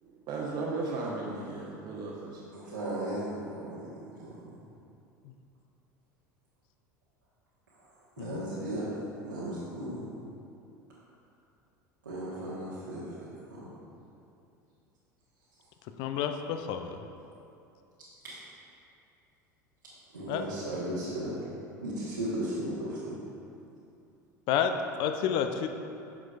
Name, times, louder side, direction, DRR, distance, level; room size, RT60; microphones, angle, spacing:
voice 1, 0.0-2.4, right 3 dB, 45° right, -5 dB, 0.9 m, -36 dB
voice 2, 2.5-4.4 7.8-7.9 8.2-8.9 9.2-10.1 12.0-13.7 18.2-18.4 20.1-21.4 21.8-23.2, right 1 dB, 85° right, -11 dB, 1.3 m, -36 dB
voice 3, 16.0-17.0 20.3-20.4 24.5-25.7, left 8 dB, 50° left, 7 dB, 0.4 m, -30 dB
8.9 x 6.1 x 2.4 m, 2.7 s
figure-of-eight pair, 75°, 10 cm